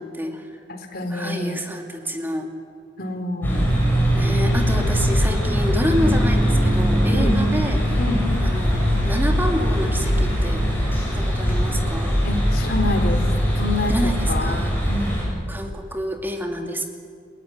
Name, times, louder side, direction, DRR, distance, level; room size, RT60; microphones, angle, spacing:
voice 1, 0.0-0.6 1.1-2.5 4.1-8.0 8.4-10.6 11.0-12.3 13.9-14.9 15.5-16.9, equal, 10° right, 3 dB, 2.5 m, -28 dB
voice 2, 0.7-1.6 3.0-3.8 7.1-7.4 8.0-8.2 12.2-13.2 13.5-14.6 14.9-15.2, left 1 dB, 55° left, 5 dB, 3.6 m, -27 dB
sound 1, 3.4-15.2, equal, 10° left, 7.6 m, -21 dB
30.0 x 18.5 x 9.8 m, 2.1 s
head